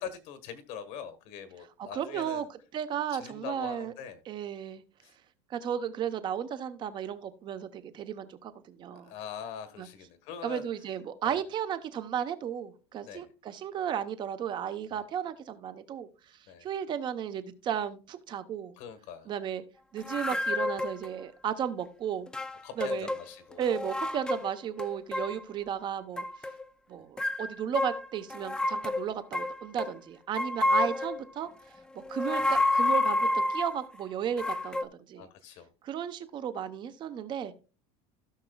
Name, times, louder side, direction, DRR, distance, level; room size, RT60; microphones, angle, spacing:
voice 1, 0.0-2.5 3.1-4.2 5.0-5.1 8.9-10.7 11.2-11.4 13.0-13.3 14.9-15.0 16.5-16.7 18.8-19.3 22.6-23.7 30.6-30.7 35.1-35.7, left 8 dB, 55° left, 11 dB, 1.3 m, -43 dB
voice 2, 1.8-3.9 4.3-4.8 5.5-9.1 9.8-9.9 10.4-16.1 16.6-18.7 19.3-19.6 19.9-22.3 22.8-23.1 23.6-26.3 26.9-31.5 32.1-35.3 35.8-37.6, right 9 dB, 30° right, 11 dB, 0.8 m, -34 dB
sound 1, 20.0-21.1 22.3-23.2 23.5-24.5 24.8-25.4 26.2-26.6 27.2-29.9 30.4-31.2 32.0-33.8 34.4-34.8, left 2 dB, 5° left, 0.4 m, -29 dB
16.0 x 6.1 x 2.3 m, 0.34 s
cardioid pair, 155°, 15 cm